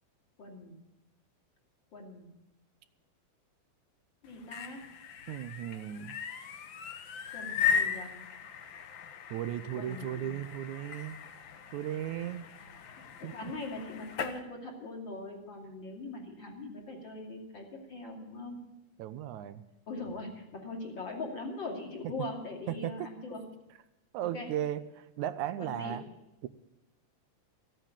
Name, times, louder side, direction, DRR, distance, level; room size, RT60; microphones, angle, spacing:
voice 1, 0.4-0.8 1.9-2.3 4.2-4.9 7.3-8.1 9.7-10.4 13.2-18.6 19.9-23.4 24.2-24.5 25.6-26.0, left 2 dB, 40° left, 0 dB, 3.3 m, -41 dB
sound 1, 4.3-14.4, left 7 dB, 60° left, 1.3 m, -37 dB
voice 2, 5.3-6.2 9.3-11.2 11.7-12.5 13.2-13.5 19.0-19.6 22.0-22.1 22.7-23.1 24.1-26.0 26.4-26.5, right 12 dB, 80° right, 12 dB, 2.1 m, -36 dB
15.0 x 9.1 x 8.9 m, 0.96 s
omnidirectional pair, 3.4 m